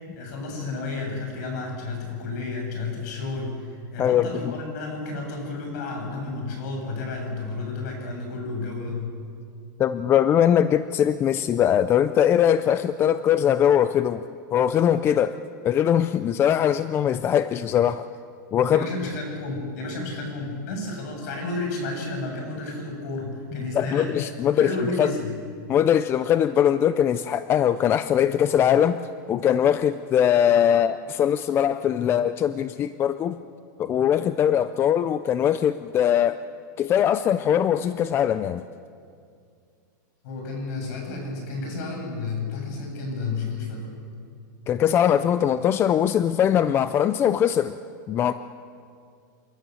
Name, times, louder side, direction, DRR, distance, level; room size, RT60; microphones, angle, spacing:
voice 1, 0.0-9.1 18.7-24.1 24.5-25.3 40.2-43.9, left 3 dB, 55° left, 2 dB, 7.5 m, -31 dB
voice 2, 4.0-4.5 9.8-14.2 14.5-15.4 15.6-18.1 18.5-18.9 23.7-24.7 25.0-25.1 25.7-29.0 29.3-33.4 33.8-36.4 36.8-38.6 44.7-47.7 48.1-48.3, left 9 dB, 20° left, 13 dB, 0.4 m, -21 dB
28.5 x 12.5 x 7.7 m, 2.3 s
supercardioid pair, 150°, 11 cm